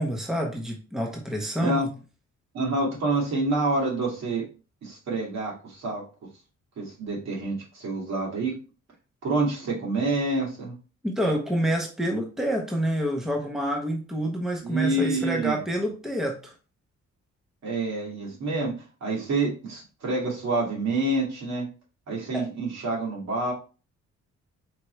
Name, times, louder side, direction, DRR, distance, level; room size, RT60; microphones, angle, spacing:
voice 1, 0.0-1.9 11.0-16.5 22.3-22.4, equal, ahead, 1 dB, 0.8 m, -28 dB
voice 2, 2.5-4.5 4.8-6.0 6.8-8.5 9.2-10.7 14.6-15.6 17.6-18.7 19.0-21.7 22.1-23.5, right 2 dB, 65° right, -3 dB, 2.3 m, -27 dB
4.5 x 3.8 x 3.1 m, 0.34 s
wide cardioid pair, 160°, 29 cm